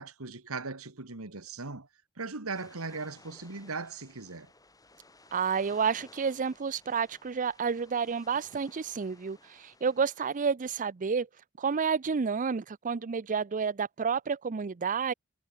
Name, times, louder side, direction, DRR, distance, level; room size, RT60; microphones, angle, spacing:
voice 1, 0.0-1.9 2.2-4.5, right 3 dB, 75° right, 2.2 m, -38 dB
sound 1, 2.5-10.5, left 2 dB, 15° left, 6.1 m, -58 dB
voice 2, 5.3-11.3 11.6-15.1, right 6 dB, 35° right, 0.5 m, -30 dB
head